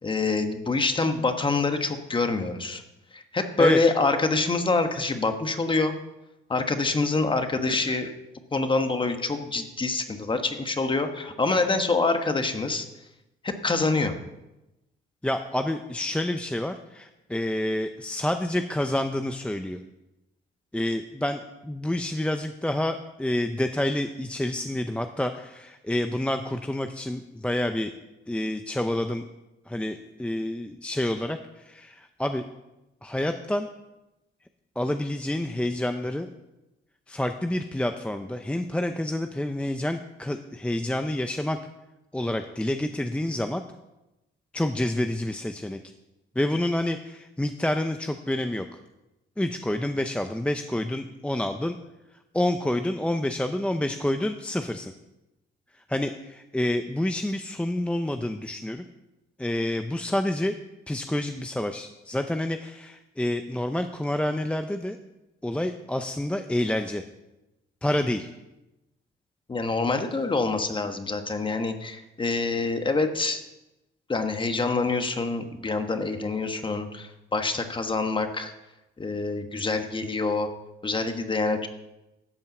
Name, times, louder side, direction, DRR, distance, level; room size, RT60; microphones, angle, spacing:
voice 1, 0.0-2.8 3.1-5.9 6.5-8.1 8.5-12.8 13.4-14.2 69.5-73.4 74.1-78.5 79.0-80.5 80.8-81.7, left 3 dB, 25° left, 7 dB, 1.3 m, -26 dB
voice 2, 15.2-19.8 20.7-27.9 28.3-29.2 29.7-32.4 33.0-33.7 34.8-36.3 37.1-41.6 42.1-43.6 44.5-45.8 46.4-48.7 49.4-51.8 52.3-54.9 55.7-58.9 59.4-60.5 60.9-65.0 65.4-67.0 67.8-68.3, left 1 dB, 5° left, 7 dB, 0.6 m, -28 dB
12.5 x 5.6 x 7.8 m, 0.97 s
cardioid pair, 90°, 20 cm